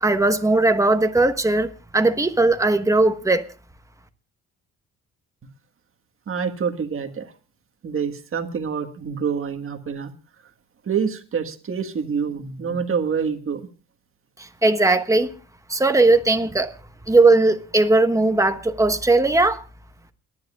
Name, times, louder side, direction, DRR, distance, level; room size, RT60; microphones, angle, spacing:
voice 1, 0.0-3.5 14.4-15.3 15.7-16.7 17.1-19.6, right 2 dB, 10° right, 1.3 m, -18 dB
voice 2, 6.3-7.3 7.8-10.1 10.9-13.7, right 6 dB, 45° right, 1.7 m, -26 dB
29.5 x 10.5 x 2.4 m
cardioid pair, 90°, 30 cm